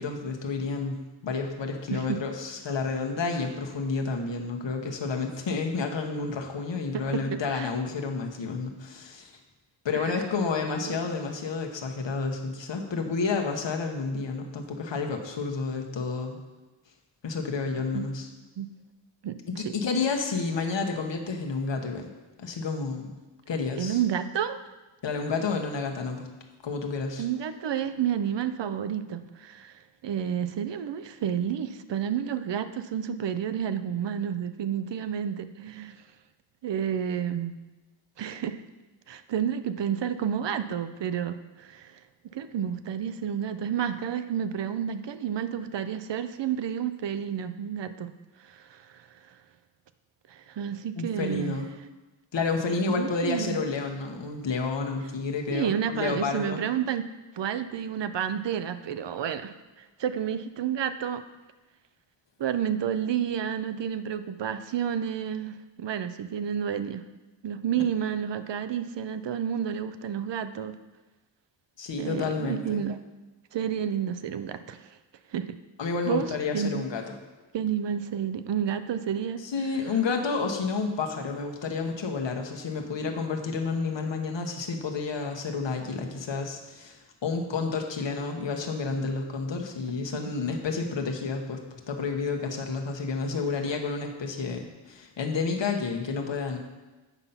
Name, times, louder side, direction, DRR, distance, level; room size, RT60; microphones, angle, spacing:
voice 1, 0.0-9.3 9.8-16.4 17.2-18.3 19.5-22.1 22.4-23.1 23.5-24.0 25.0-26.3 26.6-27.2 51.0-51.7 52.3-56.6 71.8-72.8 75.8-77.0 79.4-96.6, left 4 dB, 65° left, 2 dB, 1.2 m, -30 dB
voice 2, 1.9-2.2 6.9-7.2 7.5-7.7 9.9-10.3 10.9-11.0 17.9-18.0 18.6-18.7 19.2-19.4 23.8-24.6 27.2-36.0 36.6-37.5 38.2-38.6 39.1-42.0 42.3-48.1 48.4-49.4 50.3-51.6 52.9-53.6 55.5-57.1 57.3-61.2 62.4-67.1 67.4-70.8 72.0-73.0 73.5-75.0 75.3-75.5 76.1-76.2 76.5-76.8 77.5-79.4, right 8 dB, 65° right, 11 dB, 0.6 m, -30 dB
8.2 x 5.4 x 5.7 m, 1.2 s
wide cardioid pair, 150°, 47 cm